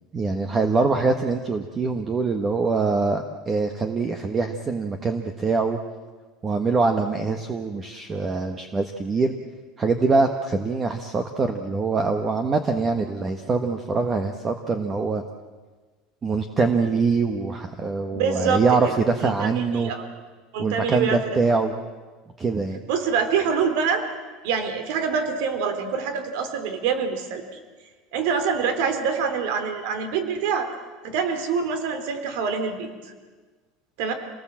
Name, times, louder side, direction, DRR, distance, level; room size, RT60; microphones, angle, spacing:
voice 1, 0.1-5.8 6.4-9.3 9.8-15.2 16.2-19.9 20.6-21.7 22.4-22.8, right 4 dB, 20° right, 7 dB, 1.2 m, -24 dB
voice 2, 18.1-18.9 19.2-20.1 20.5-21.2 22.9-24.0 24.4-27.4 28.1-30.7 31.0-32.9 34.0-34.1, right 6 dB, 70° right, 8 dB, 3.5 m, -25 dB
28.0 x 19.0 x 7.6 m, 1.3 s
cardioid pair, 160°, 0 cm